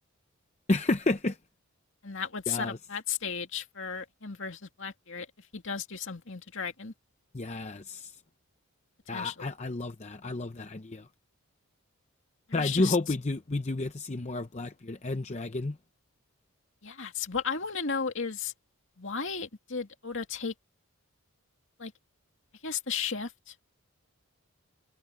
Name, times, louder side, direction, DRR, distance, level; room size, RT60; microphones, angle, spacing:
voice 1, 0.7-1.4 2.5-2.8 7.3-8.1 9.1-11.1 12.5-15.8, left 2 dB, 30° left, 0.7 m, -30 dB
voice 2, 2.0-6.9 9.1-9.5 12.5-13.0 16.8-18.5 19.0-20.5 21.8-21.9 22.6-23.5, left 6 dB, 60° left, 2.5 m, -35 dB
head